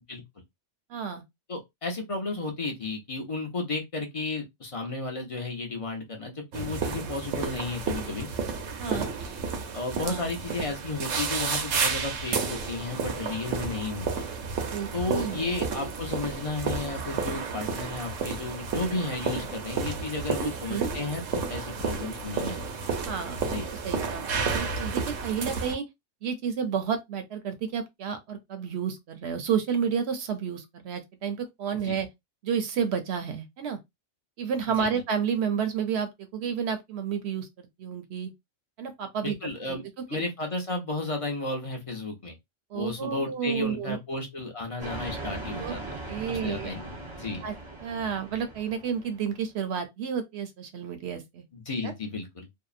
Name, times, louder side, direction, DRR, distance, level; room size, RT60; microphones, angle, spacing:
voice 1, 0.9-1.2 8.8-9.1 10.0-10.2 14.7-15.5 20.4-20.9 23.0-25.8 26.2-32.1 32.4-33.8 34.4-38.3 38.8-39.4 39.7-39.8 40.1-40.2 42.7-44.0 45.6-45.7 46.1-46.7 47.4-47.5 47.8-51.4 51.8-51.9, right 7 dB, 65° right, 0.8 m, -31 dB
voice 2, 1.5-8.3 8.8-9.1 9.7-14.3 14.9-22.8 23.4-23.7 31.8-32.0 34.8-34.9 39.2-39.8 40.1-42.3 42.7-46.0 46.3-47.4 51.5-52.5, left 3 dB, 35° left, 0.6 m, -33 dB
sound 1, 6.5-25.8, right 5 dB, 90° right, 1.0 m, -31 dB
sound 2, 44.8-49.3, right 2 dB, 30° right, 0.7 m, -39 dB
2.7 x 2.0 x 2.4 m
omnidirectional pair, 1.3 m